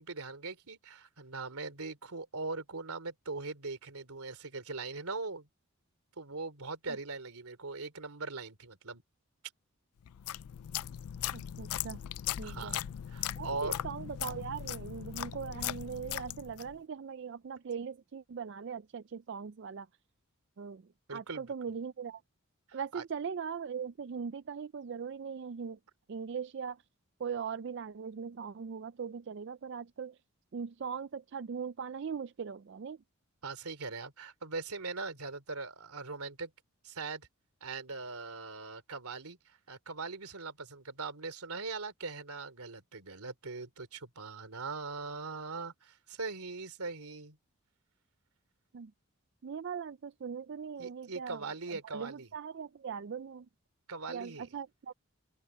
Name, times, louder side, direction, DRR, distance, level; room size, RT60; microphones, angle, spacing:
voice 1, 0.0-5.5 6.2-9.0 12.4-13.8 21.1-21.5 22.7-23.0 33.4-36.5 36.8-37.3 37.6-47.4 50.8-52.3 53.9-54.5, right 3 dB, 90° right, 3.1 m, -41 dB
sound 1, 10.1-16.8, left 11 dB, 85° left, 0.4 m, -39 dB
voice 2, 11.3-12.0 12.4-12.8 13.4-19.9 20.6-20.8 21.1-22.2 22.7-25.8 26.1-26.8 27.2-30.1 30.5-33.0 48.7-48.9 49.4-51.4 51.9-53.5 54.1-54.9, right 6 dB, 55° right, 0.4 m, -40 dB
open air
head